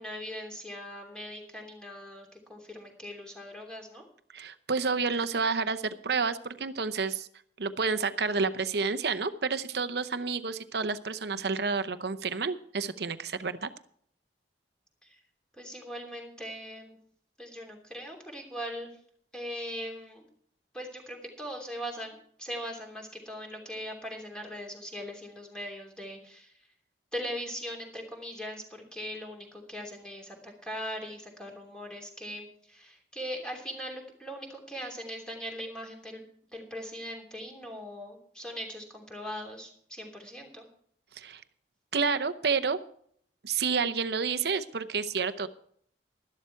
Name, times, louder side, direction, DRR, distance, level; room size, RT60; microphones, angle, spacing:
voice 1, 0.0-4.0 15.0-15.2 15.6-17.0 17.4-18.9 19.3-20.3 20.7-26.5 27.1-36.2 36.5-40.7, equal, 5° left, 1 dB, 3.0 m, -40 dB
voice 2, 4.3-7.3 7.6-13.7 41.2-41.4 41.9-42.8 43.4-45.5, right 5 dB, 60° right, 12 dB, 0.8 m, -29 dB
12.5 x 12.0 x 4.6 m, 0.63 s
head